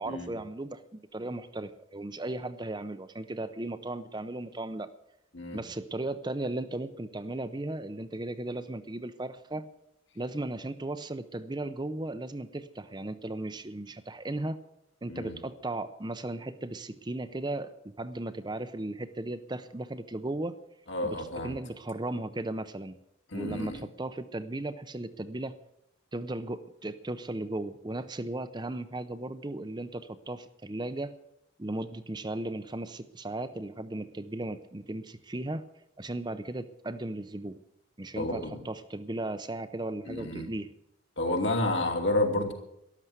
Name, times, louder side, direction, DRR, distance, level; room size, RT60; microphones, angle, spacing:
voice 1, 0.0-4.9 5.5-9.7 10.2-14.6 15.0-20.6 21.0-23.0 23.3-25.6 26.1-31.1 31.6-35.6 36.0-37.6 38.0-40.7, right 2 dB, 20° right, 11 dB, 0.7 m, -36 dB
voice 2, 20.9-21.6 23.3-23.8 38.2-38.6 40.1-40.5 41.2-42.5, left 2 dB, 60° left, 3 dB, 2.8 m, -30 dB
13.5 x 12.0 x 8.0 m, 0.79 s
head